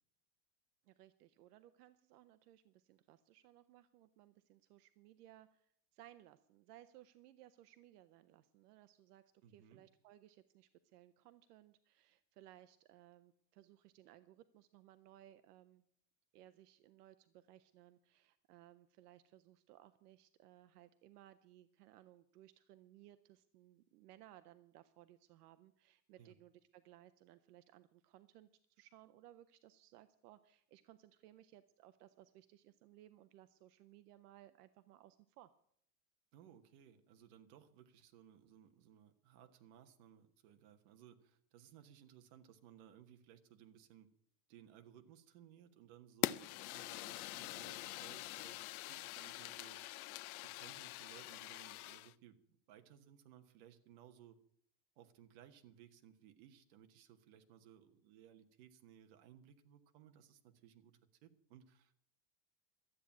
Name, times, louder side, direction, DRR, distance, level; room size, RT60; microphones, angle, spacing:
voice 1, 0.8-15.8 16.3-35.5, right 13 dB, 65° right, 12 dB, 0.8 m, -62 dB
voice 2, 9.4-9.8 26.2-26.3 36.3-44.1 44.5-49.8 50.4-52.4 52.7-54.4 55.0-62.0, right 10 dB, 40° right, 7 dB, 1.2 m, -61 dB
Fire, 46.2-52.1, left 17 dB, 60° left, 0.6 m, -44 dB
13.0 x 8.9 x 8.3 m, 0.66 s
supercardioid pair, 175°, 49 cm